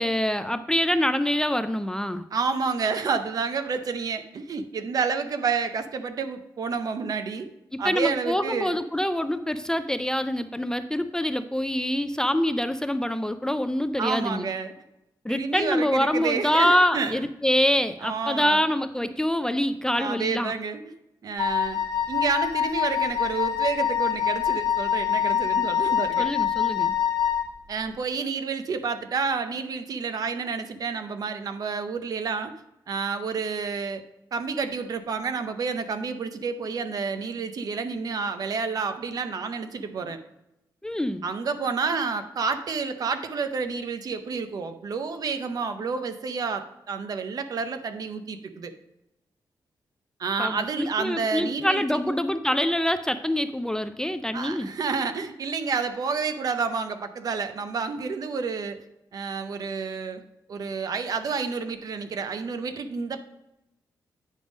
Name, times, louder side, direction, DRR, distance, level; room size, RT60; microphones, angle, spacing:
voice 1, 0.0-2.2 7.7-14.5 15.2-20.5 26.2-26.9 40.8-41.2 50.4-54.7, left 1 dB, 10° left, 10 dB, 0.3 m, -25 dB
voice 2, 2.3-7.5 7.8-8.8 14.0-14.7 15.3-17.2 18.0-18.7 20.0-20.9 21.2-21.8 22.1-26.3 27.7-32.5 32.9-34.0 34.3-40.2 41.2-48.7 50.2-51.8 54.3-58.8 59.1-60.2 60.5-63.2, right 5 dB, 55° right, 9 dB, 0.6 m, -29 dB
Wind instrument woodwind instrument, 21.4-27.5, left 9 dB, 60° left, 1.4 m, -25 dB
9.2 x 3.5 x 5.1 m, 0.89 s
wide cardioid pair, 125°, 8 cm